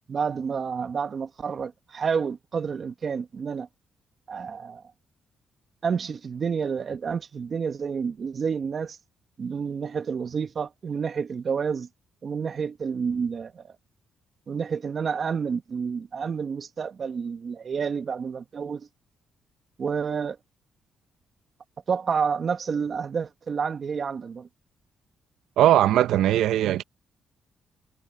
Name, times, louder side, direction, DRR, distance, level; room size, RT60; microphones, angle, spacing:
voice 1, 0.1-3.7 4.3-4.8 5.8-9.0 9.4-11.9 12.2-13.7 14.5-18.9 19.8-20.4 21.9-24.5, right 6 dB, 50° right, 1.4 m, -29 dB
voice 2, 25.6-26.8, right 12 dB, 85° right, 0.9 m, -19 dB
cardioid pair, 75°, 0 cm